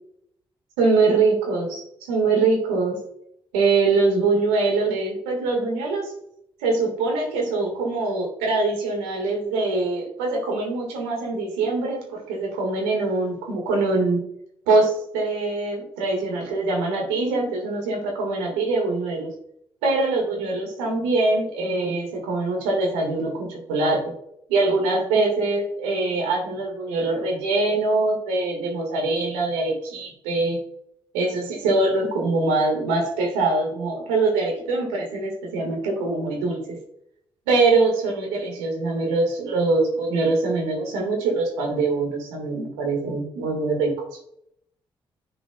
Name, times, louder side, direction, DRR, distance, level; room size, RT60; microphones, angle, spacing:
voice 1, 0.8-3.0 3.5-6.1 6.6-14.3 14.7-19.3 19.8-24.1 24.5-30.6 31.1-36.8 37.5-43.9, right 3 dB, 85° right, 1 dB, 1.7 m, -23 dB
9.4 x 4.9 x 2.3 m, 0.71 s
hypercardioid pair, 40°, 12 cm